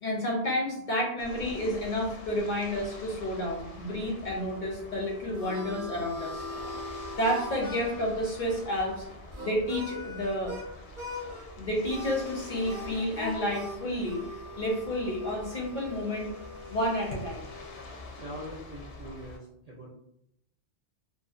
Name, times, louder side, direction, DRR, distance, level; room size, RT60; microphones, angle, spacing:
voice 1, 0.0-6.8 7.2-9.0 9.4-10.5 11.6-16.3 16.7-17.4, equal, 60° left, -1 dB, 0.5 m, -30 dB
sound 1, 1.2-19.4, left 1 dB, 85° left, 0.9 m, -46 dB
Harmonica, 4.9-10.7 10.9-11.5 11.8-17.9, left 1 dB, 30° right, 0.7 m, -41 dB
voice 2, 18.1-19.9, equal, 60° right, -4 dB, 0.4 m, -43 dB
2.7 x 2.1 x 2.4 m, 0.77 s
omnidirectional pair, 1.1 m